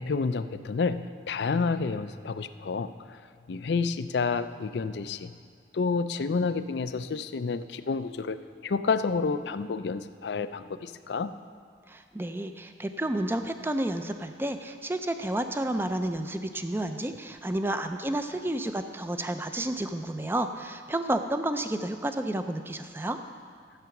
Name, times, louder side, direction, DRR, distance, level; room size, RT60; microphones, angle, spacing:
voice 1, 0.0-2.9 3.5-5.3 5.7-11.3, left 4 dB, 70° left, 12 dB, 0.4 m, -29 dB
voice 2, 11.9-23.2, right 1 dB, 10° right, 8 dB, 0.5 m, -31 dB
12.5 x 8.0 x 5.9 m, 2.2 s
head